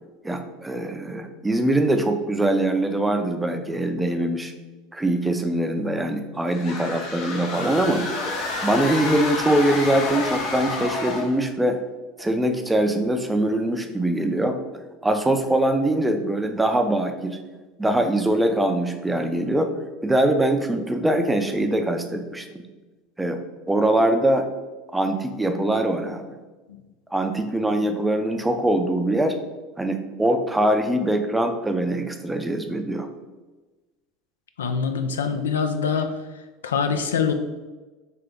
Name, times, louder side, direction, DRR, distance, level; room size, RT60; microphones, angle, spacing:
voice 1, 0.2-4.5 4.9-8.1 8.6-11.8 12.2-14.6 15.0-17.4 17.8-19.7 20.0-22.6 23.2-23.4 23.7-24.5 24.9-26.3 27.1-29.4 29.8-33.1, right 1 dB, 10° right, 6 dB, 0.5 m, -23 dB
sound 1, 6.5-11.4, left 3 dB, 60° left, 0.8 m, -29 dB
voice 2, 34.6-36.1 36.6-37.3, left 6 dB, 90° left, 7 dB, 0.3 m, -24 dB
3.4 x 2.9 x 3.6 m, 1.2 s
hypercardioid pair, 85°, 0 cm